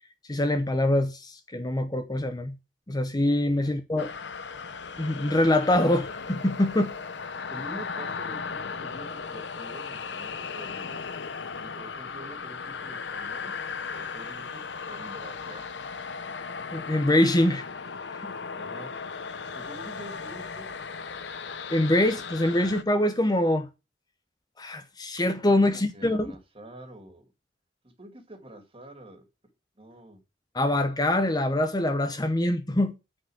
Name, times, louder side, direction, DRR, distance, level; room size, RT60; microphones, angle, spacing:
voice 1, 0.3-2.5 2.9-4.1 5.0-6.9 16.7-17.7 18.1-18.3 21.7-23.7 24.6-26.3 30.5-32.9, left 1 dB, 20° left, 0.8 m, -24 dB
sound 1, 4.0-22.8, left 5 dB, 75° left, 0.8 m, -37 dB
voice 2, 7.5-11.0 11.6-13.6 13.9-15.8 18.5-18.9 19.5-20.8 25.6-27.2 28.0-29.2 29.8-30.2, right 1 dB, 30° right, 2.5 m, -46 dB
9.9 x 5.0 x 7.8 m
head